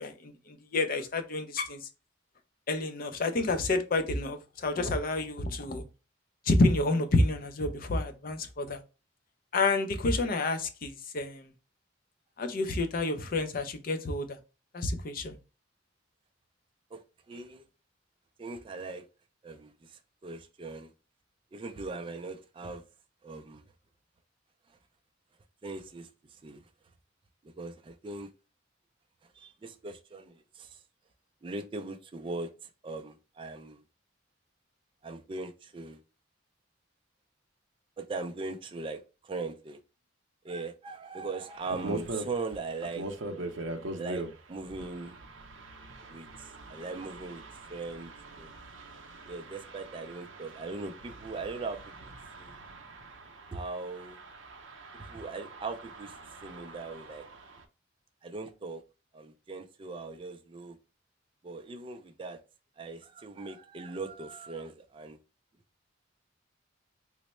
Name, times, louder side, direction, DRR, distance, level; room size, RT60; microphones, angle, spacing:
voice 1, 0.0-1.9 2.7-5.8 6.5-8.8 9.5-11.5 12.4-14.4 14.7-15.4, left 2 dB, 45° left, 0.5 m, -29 dB
voice 2, 16.9-17.7 18.4-19.0 19.4-20.9 21.5-22.8 23.2-23.6 24.7-24.8 25.6-26.6 27.6-28.3 29.3-30.8 31.4-33.8 35.0-36.0 38.0-39.8 40.4-43.1 44.0-45.2 46.1-47.4 47.7-48.5 49.2-52.1 52.4-52.6 53.5-54.2 55.0-56.1 56.4-57.2 58.2-58.8 59.1-60.8 61.4-62.4 62.8-65.2, right 3 dB, 25° right, 0.3 m, -40 dB
sound 1, 41.5-57.6, right 2 dB, 75° right, 0.5 m, -42 dB
3.1 x 2.0 x 4.1 m
head